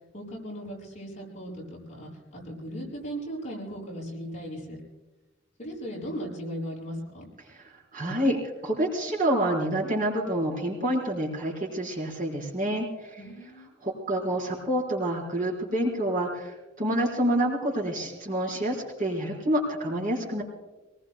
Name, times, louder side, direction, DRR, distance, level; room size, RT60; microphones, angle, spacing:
voice 1, 0.1-4.7 5.6-7.2 13.2-13.7, equal, 35° left, -4 dB, 6.5 m, -37 dB
voice 2, 7.5-8.4 8.6-13.2 13.8-20.4, right 1 dB, 45° right, -3 dB, 4.4 m, -28 dB
27.5 x 20.0 x 2.3 m, 1.1 s
head